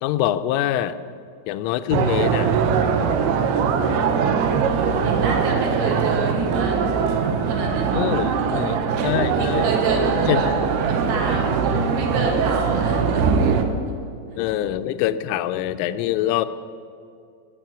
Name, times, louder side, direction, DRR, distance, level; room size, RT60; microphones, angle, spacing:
voice 1, 0.0-1.0 1.5-2.5 7.9-8.8 9.0-9.7 10.3-10.4 14.4-16.5, left 12 dB, 85° left, 11 dB, 3.1 m, -24 dB
sound 1, 1.9-13.6, right 6 dB, 90° right, 2.2 m, -21 dB
voice 2, 5.0-8.7 9.3-10.5 10.9-13.4, right 3 dB, 70° right, -1 dB, 4.2 m, -28 dB
14.5 x 7.5 x 9.1 m, 2.3 s
omnidirectional pair, 5.7 m